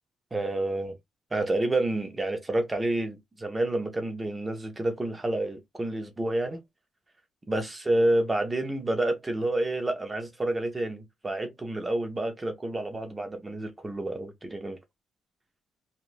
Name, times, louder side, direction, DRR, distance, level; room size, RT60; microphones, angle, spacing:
voice 1, 0.3-1.0 1.3-6.6 7.5-14.8, right 1 dB, 20° right, 0.7 m, -29 dB
3.1 x 2.4 x 2.5 m
cardioid pair, 90°, 0 cm